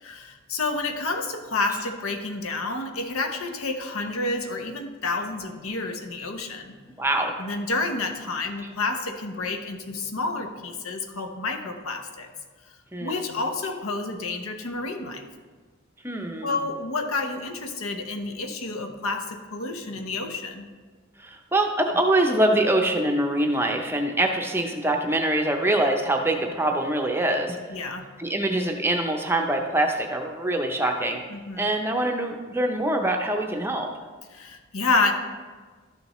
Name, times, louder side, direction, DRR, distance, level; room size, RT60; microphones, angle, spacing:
voice 1, 0.0-6.7 7.4-12.3 12.6-12.7 13.0-15.3 16.4-20.7 27.7-28.1 31.3-31.7 34.3-35.1, left 3 dB, 80° left, 6 dB, 0.9 m, -29 dB
voice 2, 7.0-7.4 12.9-13.3 16.0-16.5 21.2-27.6 28.2-31.2 31.6-33.9, right 1 dB, 10° right, 3 dB, 0.6 m, -24 dB
12.5 x 6.7 x 3.1 m, 1.4 s
head